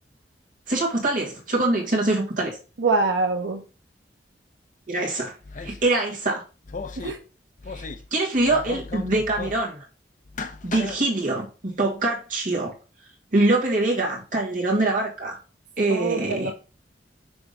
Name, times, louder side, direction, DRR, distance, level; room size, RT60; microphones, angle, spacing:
voice 1, 0.7-2.6 4.9-5.3 5.6-6.4 7.7-9.8 10.6-12.7 13.3-15.4 15.8-16.5, right 2 dB, 50° right, -1 dB, 2.1 m, -24 dB
voice 2, 2.8-3.6 7.0-7.2 15.8-16.5, right 3 dB, 90° right, 4 dB, 0.8 m, -24 dB
sound 1, 5.4-5.9 6.6-7.1 7.6-8.1 8.3-9.6 10.2-11.0, left 3 dB, 45° left, 0.7 m, -35 dB
6.2 x 3.5 x 5.2 m, 0.34 s
head